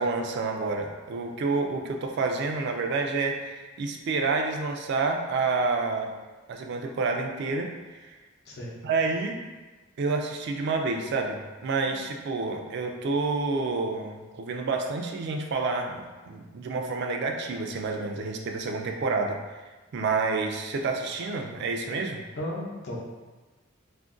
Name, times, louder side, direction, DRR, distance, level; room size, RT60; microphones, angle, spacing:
voice 1, 0.0-6.1 6.5-7.7 8.0-8.2 8.8-9.4 10.0-19.4 19.9-22.2, right 3 dB, 60° right, 3 dB, 0.3 m, -29 dB
voice 2, 22.4-23.0, left 1 dB, 55° left, -3 dB, 0.6 m, -34 dB
2.5 x 2.1 x 3.6 m, 1.2 s
head